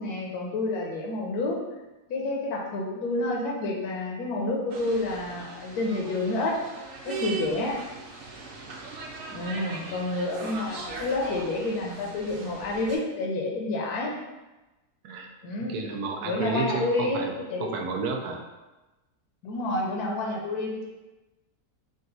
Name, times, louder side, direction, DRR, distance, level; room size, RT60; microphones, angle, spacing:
voice 1, 0.0-1.6 2.1-6.6 7.0-7.8 9.3-14.1 15.4-15.9 16.2-17.7 19.4-20.9, left 2 dB, 80° left, -1 dB, 1.2 m, -29 dB
sound 1, 4.7-13.0, right 4 dB, 50° right, 0.8 m, -39 dB
voice 2, 15.7-17.3 17.6-18.4, right 4 dB, 80° right, 3 dB, 1.1 m, -32 dB
3.8 x 2.4 x 3.8 m, 1.1 s
omnidirectional pair, 1.6 m